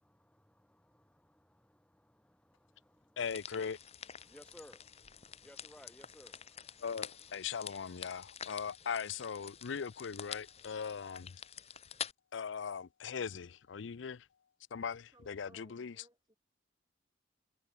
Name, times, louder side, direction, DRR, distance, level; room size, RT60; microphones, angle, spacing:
voice 1, 0.0-3.5 3.8-7.5, equal, 5° left, 5.2 m, -61 dB
voice 2, 3.2-3.8 6.8-11.3 12.3-14.3 14.7-16.1, left 6 dB, 85° left, 0.5 m, -40 dB
sound 1, 3.2-12.1, left 8 dB, 35° left, 1.5 m, -48 dB
voice 3, 15.1-16.4, right 1 dB, 20° right, 7.4 m, -63 dB
head